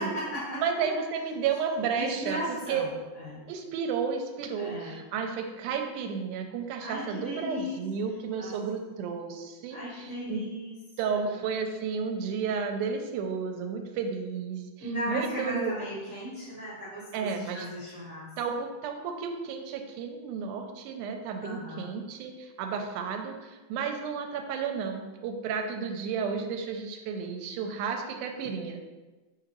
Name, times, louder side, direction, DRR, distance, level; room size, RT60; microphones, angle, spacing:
voice 1, 0.0-1.0 1.9-3.4 4.6-5.0 6.8-7.8 8.3-8.5 9.7-10.7 11.0-11.2 14.8-18.3 21.4-21.9, equal, 50° right, -11 dB, 0.9 m, -36 dB
voice 2, 0.6-2.4 2.7-2.9 3.5-10.4 11.0-15.7 17.1-17.7 18.4-28.8, right 6 dB, 85° right, 4 dB, 2.0 m, -32 dB
4.6 x 3.8 x 2.9 m, 1.2 s
omnidirectional pair, 3.5 m